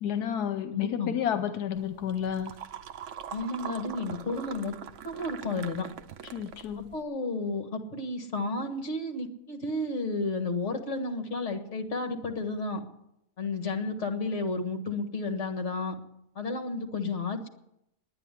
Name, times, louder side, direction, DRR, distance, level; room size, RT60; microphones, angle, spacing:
voice 1, 0.0-2.5 6.3-7.0, left 9 dB, 85° left, 10 dB, 1.3 m, -31 dB
voice 2, 0.7-1.1 3.3-4.7 5.0-5.9 6.9-12.8 13.4-16.0 16.4-17.5, left 3 dB, 50° left, 5 dB, 1.9 m, -32 dB
sound 1, 1.7-7.0, right 8 dB, 60° right, 0.9 m, -43 dB
10.0 x 10.0 x 9.9 m, 0.81 s
omnidirectional pair, 1.7 m